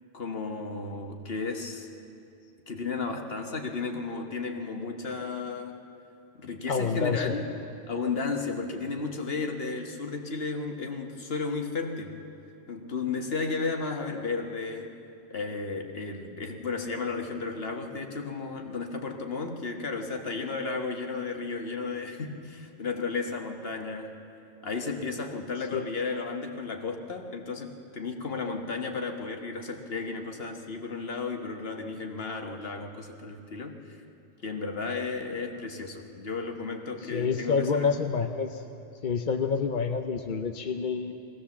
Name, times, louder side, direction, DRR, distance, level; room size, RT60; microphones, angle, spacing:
voice 1, 0.1-1.9 2.7-5.8 6.3-7.5 7.9-12.2 12.7-24.1 24.6-34.0 34.4-37.9, left 4 dB, 70° left, 3 dB, 1.7 m, -33 dB
voice 2, 6.7-7.3 25.7-25.9 37.0-38.6 39.0-41.1, left 5 dB, 50° left, 5 dB, 0.9 m, -28 dB
22.0 x 17.0 x 7.2 m, 2.6 s
omnidirectional pair, 1.1 m